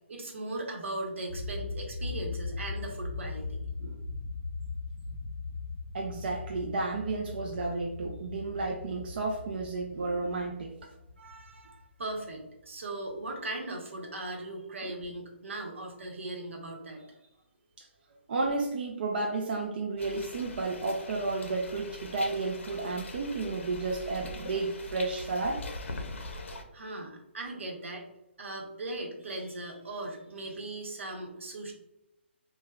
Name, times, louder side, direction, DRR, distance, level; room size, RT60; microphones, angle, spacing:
voice 1, 0.1-3.6 11.2-17.2 26.7-28.1 28.4-31.7, right 2 dB, 85° right, 1 dB, 0.9 m, -38 dB
sound 1, 1.3-12.6, left 3 dB, 10° right, 1.0 m, -39 dB
voice 2, 5.9-10.7 14.8-14.9 17.8-17.9 18.3-25.6, right 3 dB, 50° right, 0 dB, 0.4 m, -32 dB
sound 2, 20.0-26.6, left 2 dB, 80° left, 0.5 m, -42 dB
3.1 x 2.1 x 2.3 m, 0.87 s
hypercardioid pair, 165°, 7 cm